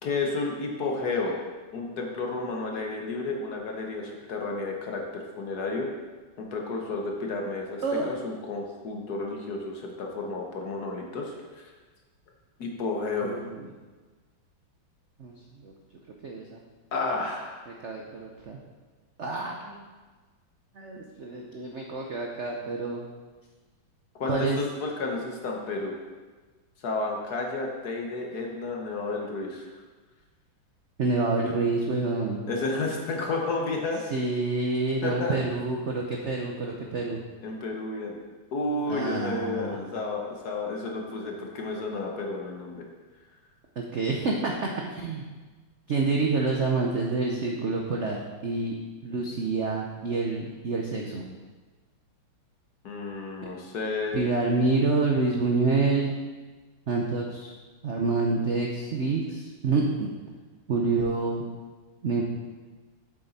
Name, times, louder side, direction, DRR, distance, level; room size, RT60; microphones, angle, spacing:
voice 1, 0.0-1.4 1.7-5.9 6.4-11.7 12.6-13.4 16.9-17.6 24.2-25.9 26.8-29.7 32.5-34.0 35.0-35.3 37.4-38.2 38.5-42.8 52.8-54.2, left 3 dB, 55° left, 0 dB, 1.5 m, -31 dB
voice 2, 7.8-8.1 13.2-13.7 15.2-15.7 16.2-16.6 17.7-18.6 19.2-19.8 20.7-23.1 24.3-24.6 31.0-32.4 34.1-37.2 38.9-39.8 43.8-45.2 45.9-48.7 49.0-51.2 54.1-56.2 56.9-57.5 57.8-60.1 60.7-61.4 62.0-62.2, right 3 dB, 70° right, 1 dB, 0.6 m, -27 dB
7.8 x 7.6 x 4.1 m, 1.3 s
omnidirectional pair, 2.2 m